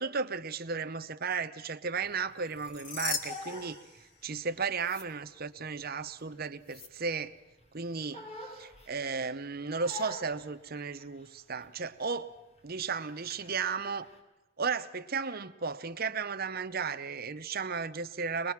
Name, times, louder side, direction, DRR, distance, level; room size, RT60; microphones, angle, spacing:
voice 1, 0.0-3.8 4.2-7.3 7.7-12.3 12.6-14.1 14.6-18.5, right 5 dB, 45° right, 10 dB, 0.8 m, -34 dB
Crying sobbing, 2.0-4.7 5.0-7.3 7.6-9.3 9.8-11.7 12.0-12.3 12.6-14.2, left 2 dB, 30° left, 4.0 m, -47 dB
sound 1, 2.4-4.5 4.8-5.0 6.7-6.9, left 5 dB, 55° left, 2.8 m, -39 dB
24.0 x 21.0 x 6.0 m, 1.1 s
head